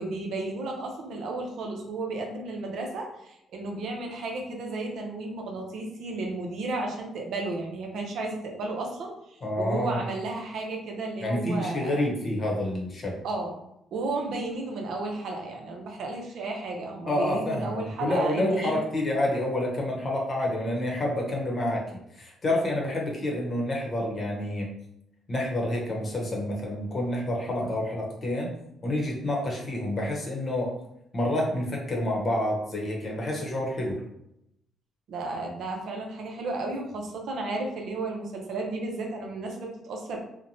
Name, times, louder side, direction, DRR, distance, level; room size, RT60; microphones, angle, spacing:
voice 1, 0.0-12.0 13.2-13.5 13.9-18.8 35.1-40.2, right 2 dB, 70° right, 1 dB, 0.6 m, -33 dB
voice 2, 9.4-10.0 11.2-13.2 17.1-21.8 22.1-24.7 25.3-28.5 28.8-30.8 31.1-34.0, left 1 dB, 40° left, -1 dB, 0.8 m, -28 dB
2.9 x 2.1 x 2.6 m, 0.79 s
cardioid pair, 90°, 0 cm